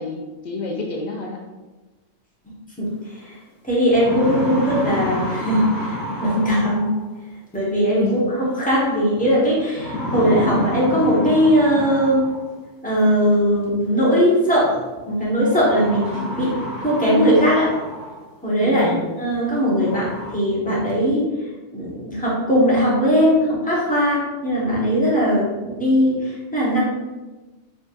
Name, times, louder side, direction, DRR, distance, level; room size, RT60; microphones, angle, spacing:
voice 1, 0.0-1.4 8.0-8.2 18.6-19.0, left 4 dB, 80° left, 0 dB, 0.4 m, -28 dB
voice 2, 2.8-3.4 3.6-6.9 7.5-12.3 12.8-14.8 15.1-16.5 16.8-17.7 18.4-18.9 19.2-21.3 21.7-26.8, equal, 5° left, -7 dB, 1.1 m, -19 dB
sound 1, 3.2-3.3 3.7-7.1 8.6-9.0 9.8-12.6 13.8-13.9 15.4-18.3 18.8-18.9 19.4-19.5 19.8-20.3, left 1 dB, 50° left, 1.0 m, -29 dB
5.0 x 3.5 x 2.5 m, 1.2 s
omnidirectional pair, 1.3 m